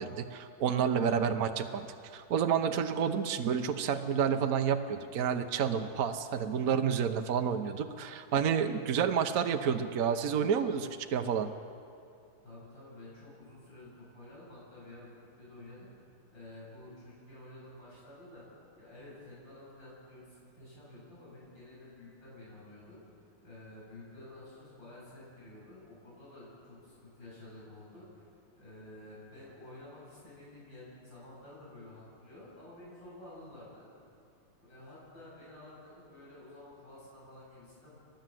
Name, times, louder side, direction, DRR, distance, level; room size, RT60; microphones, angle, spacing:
voice 1, 0.0-1.9 2.1-11.5, right 7 dB, 55° right, 6 dB, 1.1 m, -29 dB
voice 2, 12.4-15.1 15.4-15.9 16.3-18.4 18.7-23.0 23.4-28.2 28.6-33.9 34.6-38.0, left 1 dB, 70° left, -7 dB, 8.3 m, -51 dB
30.0 x 12.0 x 7.7 m, 2.5 s
omnidirectional pair, 2.1 m